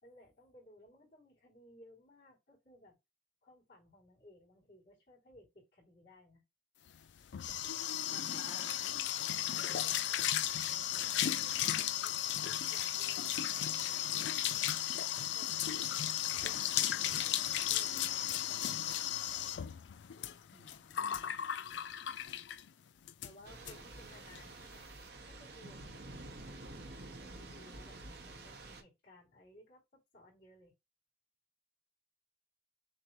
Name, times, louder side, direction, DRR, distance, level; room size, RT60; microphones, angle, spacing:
voice 1, 0.0-3.0 3.4-6.4 9.5-10.4 11.1-14.4 15.3-19.4 21.5-21.9 23.2-24.8 25.3-30.7, left 1 dB, 55° left, 3.3 m, -61 dB
sound 1, 6.9-22.7 23.1-23.3 23.7-23.8 24.0-24.4, left 11 dB, 80° left, 0.4 m, -35 dB
voice 2, 8.1-8.9 20.5-21.4, right 1 dB, 15° right, 0.6 m, -56 dB
Thunder / Rain, 23.4-28.8, right 2 dB, 60° right, 0.9 m, -49 dB
6.5 x 2.2 x 3.0 m
head